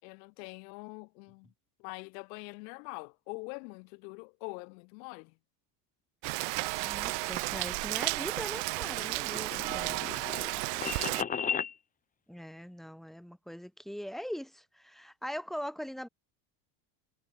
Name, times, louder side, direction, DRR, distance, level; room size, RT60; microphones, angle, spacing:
voice 1, 0.0-1.5 1.8-5.4 10.1-11.2, left 32 dB, 85° left, 6.6 m, -45 dB
Rain, 6.2-11.2, right 33 dB, 60° right, 0.7 m, -33 dB
Telephone, 6.3-8.4, right 8 dB, 25° right, 6.7 m, -51 dB
voice 2, 6.8-9.9 12.3-16.1, equal, ahead, 1.5 m, -41 dB
sound 1, 8.7-11.7, left 7 dB, 15° left, 1.0 m, -35 dB
cardioid pair, 160°, 49 cm